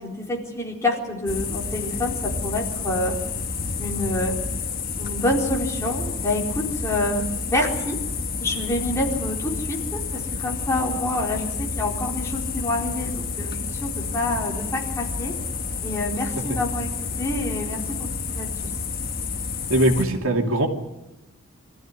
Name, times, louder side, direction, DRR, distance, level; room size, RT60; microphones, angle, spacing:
voice 1, 0.0-3.2 3.8-4.4 5.0-8.0 8.4-15.4 15.8-16.9 17.2-18.5, left 1 dB, 15° left, -2 dB, 4.2 m, -27 dB
sound 1, 1.3-20.0, left 4 dB, 45° left, 1.6 m, -30 dB
voice 2, 19.7-20.7, right 1 dB, 75° right, 3 dB, 2.6 m, -20 dB
24.0 x 15.0 x 9.9 m, 0.97 s
head